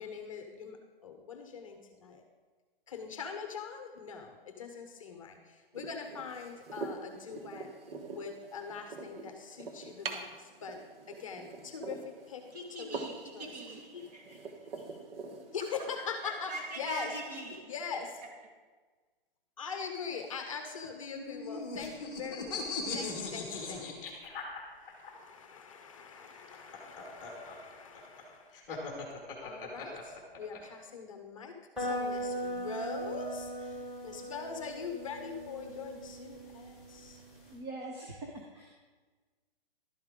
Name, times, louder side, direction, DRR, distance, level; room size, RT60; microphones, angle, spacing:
voice 1, 0.0-2.2 2.9-7.7 8.1-10.8 11.1-12.5 12.8-13.0 13.3-13.5 14.3-14.4 14.9-15.0 15.5-17.1 17.7-18.1 19.6-24.0 24.7-28.6 29.4-37.2, left 5 dB, 35° left, 0.8 m, -42 dB
sound 1, 5.7-17.6, right 4 dB, 75° right, 1.4 m, -45 dB
voice 2, 12.5-14.7 15.6-18.0 18.4-18.5, right 2 dB, 45° right, 2.2 m, -44 dB
sound 2, 21.1-25.1 26.4-30.6, left 4 dB, 10° left, 1.2 m, -39 dB
sound 3, 31.8-37.5, equal, 5° right, 3.5 m, -39 dB
voice 3, 37.5-38.7, right 2 dB, 30° right, 1.0 m, -43 dB
12.0 x 8.6 x 3.7 m
hypercardioid pair, 170°, 29 cm